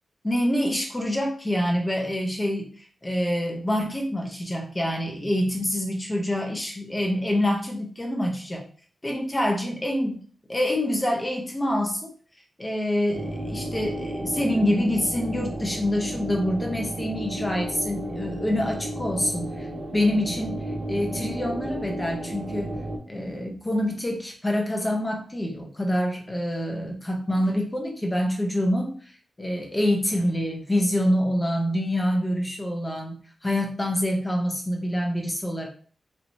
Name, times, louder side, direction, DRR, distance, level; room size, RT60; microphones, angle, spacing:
voice 1, 0.2-8.6 9.0-10.2 10.5-12.1 12.6-19.7 19.9-20.6 20.9-22.7 23.1-29.1 29.4-35.7, left 1 dB, 15° left, 1 dB, 0.8 m, -26 dB
sound 1, 13.1-23.0, right 1 dB, 70° right, 1.2 m, -33 dB
4.3 x 2.9 x 2.7 m, 0.43 s
wide cardioid pair, 180°, 0 cm